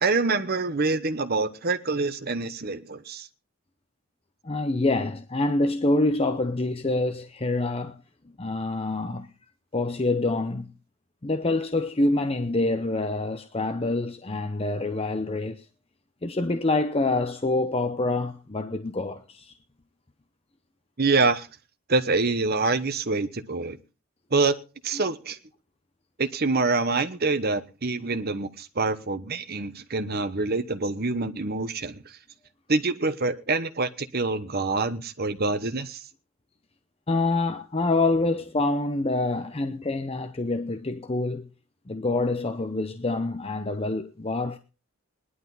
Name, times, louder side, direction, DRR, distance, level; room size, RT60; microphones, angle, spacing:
voice 1, 0.0-3.3 21.0-21.5 21.9-23.8 24.3-24.6 24.8-25.4 26.2-32.2 32.7-36.0, right 3 dB, 45° right, 1.0 m, -26 dB
voice 2, 4.4-8.0 8.4-9.3 9.7-10.7 11.2-15.6 16.2-19.5 37.1-41.5 41.9-44.6, left 2 dB, 25° left, 0.7 m, -26 dB
18.5 x 11.0 x 4.0 m
head